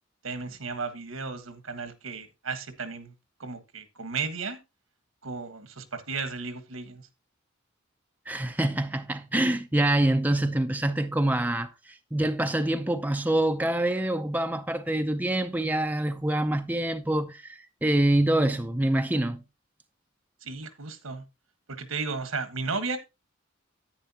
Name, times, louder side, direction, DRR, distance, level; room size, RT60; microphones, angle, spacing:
voice 1, 0.2-3.1 3.4-4.6 5.2-7.1 20.4-21.2 21.7-23.0, right 4 dB, 80° right, 1.4 m, -34 dB
voice 2, 8.3-19.4, right 1 dB, 10° right, 0.5 m, -26 dB
10.5 x 9.0 x 2.8 m
head